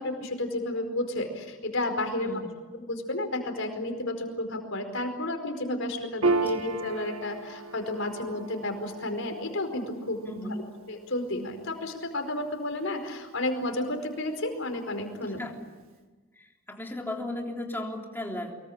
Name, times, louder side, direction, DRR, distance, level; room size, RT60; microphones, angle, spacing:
voice 1, 0.0-2.4 2.7-10.6 10.9-15.4, left 1 dB, 65° left, 5 dB, 4.8 m, -32 dB
voice 2, 2.2-2.5 6.5-6.6 10.3-10.5 15.2-15.7 16.4-18.6, left 1 dB, 10° left, 1 dB, 3.4 m, -36 dB
Piano, 6.2-13.1, right 3 dB, 80° right, 1.9 m, -34 dB
24.5 x 22.0 x 8.8 m, 1.3 s
head